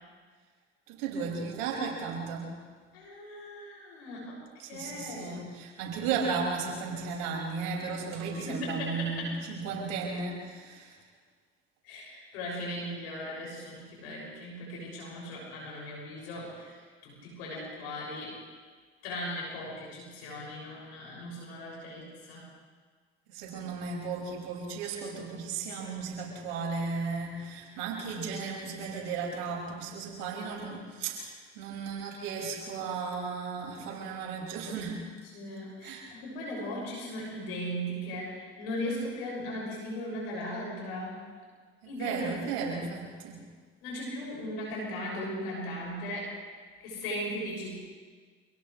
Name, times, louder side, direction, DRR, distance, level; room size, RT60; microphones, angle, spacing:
voice 1, 0.9-2.5 4.6-11.0 23.3-35.0 35.8-36.1 41.8-43.4, right 5 dB, 80° right, -2 dB, 6.1 m, -35 dB
voice 2, 2.9-5.4 5.9-6.0 8.4-9.4 11.8-16.7 17.0-18.4 19.0-22.5 35.3-41.2 41.8-42.2 42.5-42.6 43.8-46.4 46.8-47.7, left 1 dB, 85° left, -4 dB, 6.8 m, -38 dB
29.0 x 27.5 x 3.3 m, 1.5 s
hypercardioid pair, 50°, 30 cm